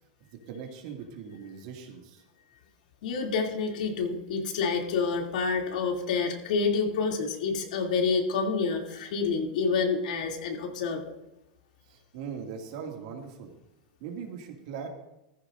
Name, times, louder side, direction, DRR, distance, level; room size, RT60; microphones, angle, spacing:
voice 1, 0.5-2.2 8.9-9.1 11.9-13.5 14.0-14.9, right 6 dB, 55° right, 2 dB, 2.3 m, -40 dB
voice 2, 3.0-11.0, left 5 dB, 80° left, 1 dB, 2.8 m, -28 dB
15.0 x 14.5 x 2.6 m, 0.91 s
supercardioid pair, 160°, 4 cm